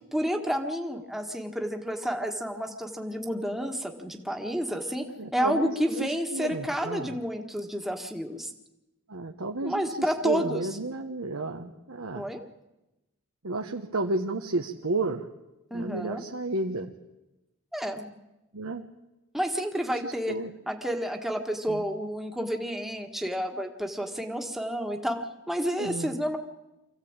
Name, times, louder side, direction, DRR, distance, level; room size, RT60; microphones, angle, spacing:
voice 1, 0.1-5.1 5.3-8.5 9.6-10.6 12.1-12.4 15.7-16.2 17.7-18.1 19.3-20.4 20.7-26.4, equal, ahead, 3 dB, 1.6 m, -30 dB
voice 2, 5.2-7.1 9.1-12.3 13.4-15.3 15.7-16.9 18.5-18.8 20.0-20.5 21.7-21.8 25.8-26.1, right 2 dB, 75° right, 3 dB, 1.2 m, -32 dB
24.5 x 15.5 x 8.9 m, 1.0 s
head